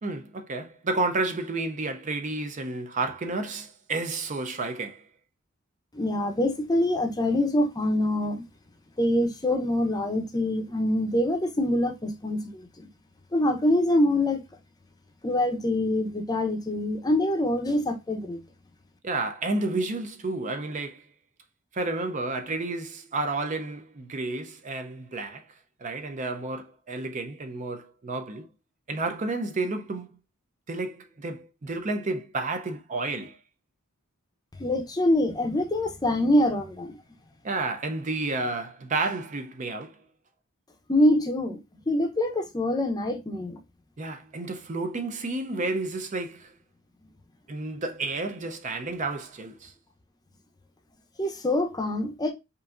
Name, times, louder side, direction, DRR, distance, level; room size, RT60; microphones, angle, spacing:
voice 1, 0.0-5.1 19.0-21.0 21.7-25.5 25.8-28.5 28.9-30.2 30.7-33.4 37.4-40.0 44.0-46.5 47.5-49.7, right 3 dB, 35° right, 0.5 m, -31 dB
voice 2, 5.9-8.4 9.0-12.9 13.3-14.4 15.2-18.4 34.6-37.0 40.9-41.6 41.9-43.6 51.2-52.3, left 1 dB, 20° left, 0.6 m, -25 dB
5.4 x 2.6 x 2.4 m
head